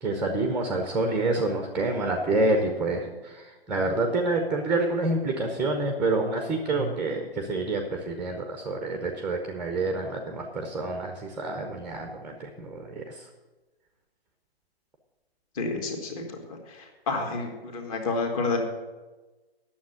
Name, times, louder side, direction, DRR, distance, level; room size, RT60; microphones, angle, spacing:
voice 1, 0.0-13.2, right 2 dB, 5° right, 4 dB, 0.7 m, -28 dB
voice 2, 15.6-16.1 16.7-18.6, left 3 dB, 35° left, 3 dB, 2.1 m, -29 dB
9.5 x 7.2 x 8.8 m, 1.2 s
figure-of-eight pair, 130°, 31 cm